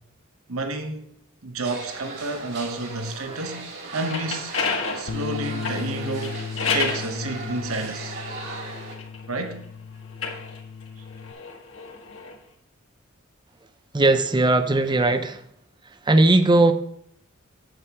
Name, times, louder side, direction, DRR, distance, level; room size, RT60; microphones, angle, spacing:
voice 1, 0.5-1.1 1.4-4.7 4.9-6.4 6.7-8.2 9.3-9.6, right 2 dB, 75° right, 1.0 m, -30 dB
sound 1, 1.6-9.0, right 4 dB, 55° right, 2.3 m, -37 dB
sound 2, 3.8-7.1 7.8-9.5 10.0-12.4, left 5 dB, 65° left, 1.8 m, -31 dB
Bass guitar, 5.1-11.3, left 5 dB, 50° left, 0.4 m, -36 dB
voice 2, 13.9-15.4 16.0-16.7, right 2 dB, 20° right, 0.6 m, -18 dB
8.8 x 8.2 x 2.9 m
head